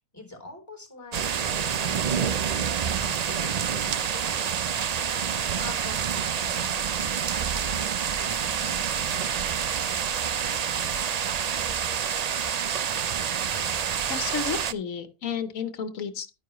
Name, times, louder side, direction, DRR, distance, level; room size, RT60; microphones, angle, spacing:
voice 1, 0.1-4.7 5.2-9.3, left 2 dB, 10° left, 5 dB, 3.4 m, -45 dB
sound 1, 1.1-14.7, right 8 dB, 65° right, 0.4 m, -27 dB
voice 2, 14.1-16.3, left 6 dB, 90° left, 10 dB, 1.4 m, -32 dB
11.0 x 9.4 x 3.0 m, 0.29 s
omnidirectional pair, 1.4 m